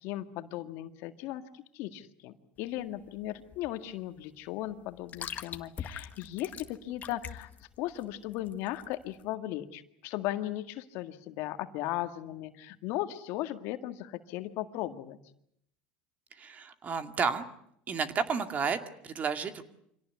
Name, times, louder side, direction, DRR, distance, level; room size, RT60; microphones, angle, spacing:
voice 1, 0.0-7.5 7.8-15.2, left 14 dB, 65° left, 8 dB, 1.8 m, -37 dB
sound 1, 2.6-9.3, left 8 dB, 35° left, 1.6 m, -44 dB
voice 2, 16.4-17.4 17.9-19.6, right 6 dB, 35° right, 8 dB, 2.3 m, -31 dB
25.5 x 18.0 x 9.5 m, 0.74 s
supercardioid pair, 105°, 5 cm